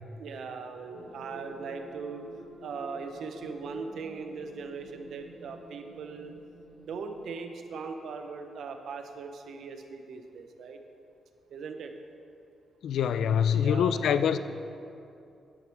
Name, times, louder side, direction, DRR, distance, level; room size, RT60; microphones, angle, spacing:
voice 1, 0.2-2.2 2.6-6.3 6.9-10.8 11.5-11.9 13.5-14.2, right 5 dB, 70° right, 6 dB, 0.7 m, -39 dB
sound 1, 0.9-7.3, equal, 25° left, 2.4 m, -49 dB
voice 2, 12.8-14.4, left 8 dB, 75° left, 12 dB, 0.4 m, -25 dB
10.0 x 9.1 x 3.5 m, 2.6 s
cardioid pair, 130°, 0 cm